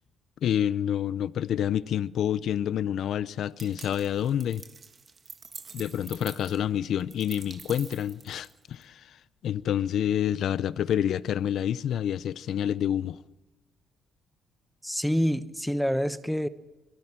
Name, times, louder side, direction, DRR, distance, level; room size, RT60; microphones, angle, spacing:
voice 1, 0.4-4.6 5.7-9.2 9.4-13.2, left 10 dB, 70° left, 0.6 m, -28 dB
sound 1, 3.6-8.8, right 5 dB, 40° right, 1.5 m, -46 dB
voice 2, 14.8-16.5, equal, ahead, 1.0 m, -27 dB
22.5 x 16.0 x 7.4 m
cardioid pair, 90°, 0 cm